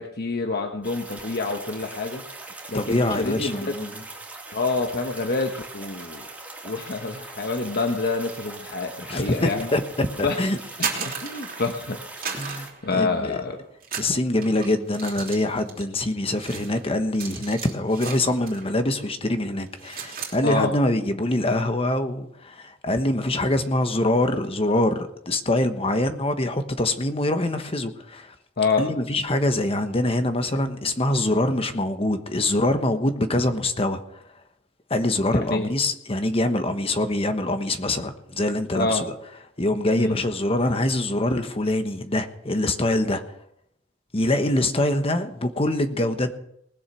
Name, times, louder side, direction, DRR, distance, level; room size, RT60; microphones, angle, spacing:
voice 1, 0.0-2.2 2.7-3.7 4.5-6.3 6.6-9.7 10.2-10.4 10.8-12.3 12.8-13.6 20.4-20.7 28.6-28.9 35.5-35.6 38.7-39.0 39.9-40.2, left 3 dB, 55° left, 1.2 m, -27 dB
sound 1, 0.8-12.7, right 2 dB, 10° right, 2.8 m, -41 dB
voice 2, 2.7-4.0 9.1-10.6 12.3-13.4 14.0-28.3 28.8-34.2 34.9-39.1 39.6-43.2 44.1-46.3, left 1 dB, 30° left, 1.2 m, -24 dB
sound 2, 10.6-11.8 12.2-13.4 13.8-18.7 19.0-19.3 19.6-20.4, right 6 dB, 50° right, 3.1 m, -35 dB
19.5 x 7.3 x 6.1 m
head